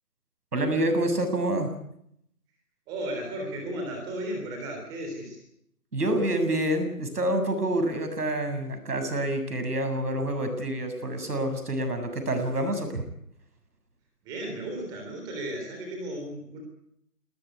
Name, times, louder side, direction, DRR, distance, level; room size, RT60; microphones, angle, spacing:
voice 1, 0.5-1.7 5.9-13.0, right 1 dB, 75° right, 7 dB, 7.5 m, -27 dB
voice 2, 2.9-5.4 14.2-16.6, right 1 dB, 10° right, 2 dB, 3.6 m, -35 dB
21.0 x 18.5 x 9.5 m, 0.75 s
hypercardioid pair, 170°, 47 cm